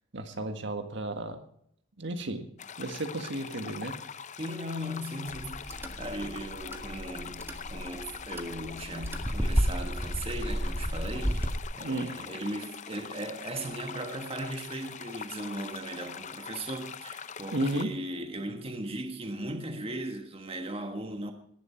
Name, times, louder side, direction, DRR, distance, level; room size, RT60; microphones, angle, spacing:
voice 1, 0.1-1.4 2.0-2.5 2.8-4.0 11.8-12.1 17.5-17.9, right 1 dB, 60° right, 1.8 m, -33 dB
sound 1, 2.6-17.8, left 7 dB, 35° left, 0.6 m, -43 dB
voice 2, 4.4-21.3, right 1 dB, 30° right, 1.5 m, -38 dB
sound 2, 5.3-11.6, equal, 10° right, 1.7 m, -33 dB
18.5 x 11.0 x 4.5 m
head